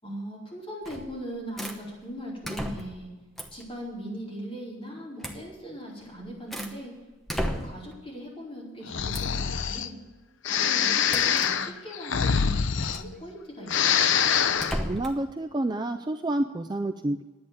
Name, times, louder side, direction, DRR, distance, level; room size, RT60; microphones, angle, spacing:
voice 1, 0.0-3.1 3.5-6.9 7.3-10.0 10.5-14.3, equal, 25° left, -5 dB, 4.5 m, -39 dB
sound 1, 0.8-1.2 1.6-1.8 2.4-3.0 3.4-3.7 5.2-5.4 6.0-6.8 7.3-7.9 9.1-9.4 11.1-11.5 12.8-13.1 14.6-15.2, equal, ahead, 0.9 m, -34 dB
Breathing, 8.9-9.9 10.4-13.4 13.6-14.8, left 7 dB, 65° left, 0.6 m, -25 dB
voice 2, 14.9-17.2, right 1 dB, 20° right, 7 dB, 0.4 m, -29 dB
10.5 x 8.7 x 9.2 m, 1.2 s
head